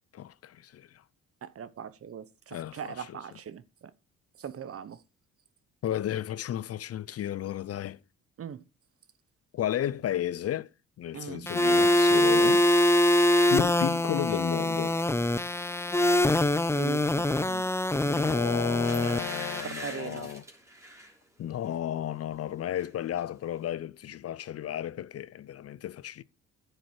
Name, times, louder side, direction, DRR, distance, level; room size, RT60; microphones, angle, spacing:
voice 1, 0.1-0.9 2.5-3.2 5.8-8.0 9.5-10.7 11.0-12.7 13.5-15.0 18.0-20.4 21.4-26.2, left 11 dB, 50° left, 0.6 m, -33 dB
voice 2, 1.4-3.9 4.4-5.0 8.4-8.6 11.1-11.5 16.8-17.7 19.6-20.3, right 8 dB, 50° right, 1.0 m, -40 dB
sound 1, 11.5-19.6, left 1 dB, 10° left, 0.6 m, -24 dB
sound 2, 18.8-21.2 21.6-21.9 22.2-22.9 23.2-23.3, right 1 dB, 10° right, 3.3 m, -43 dB
10.5 x 6.7 x 4.8 m
cardioid pair, 90°, 30 cm